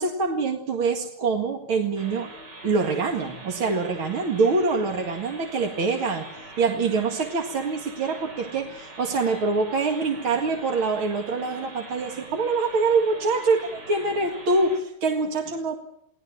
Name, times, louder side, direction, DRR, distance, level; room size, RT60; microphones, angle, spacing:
voice 1, 0.0-2.3 2.6-6.3 6.6-15.8, right 4 dB, 80° right, 3 dB, 2.8 m, -25 dB
sound 1, 2.0-14.8, right 2 dB, 55° right, 4.2 m, -43 dB
30.0 x 19.0 x 7.5 m, 0.75 s
omnidirectional pair, 2.2 m